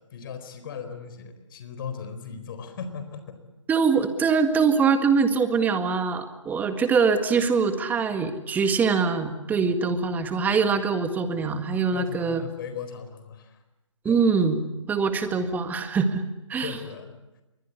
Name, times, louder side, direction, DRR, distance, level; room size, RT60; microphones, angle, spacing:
voice 1, 0.1-3.4 11.9-13.6 14.0-14.2 16.6-17.1, left 6 dB, 45° left, 9 dB, 4.2 m, -37 dB
voice 2, 3.7-12.4 14.1-14.6 14.9-16.2 16.5-16.8, right 5 dB, 10° right, 8 dB, 1.8 m, -23 dB
27.0 x 23.0 x 8.2 m, 1.0 s
figure-of-eight pair, 140°, 16 cm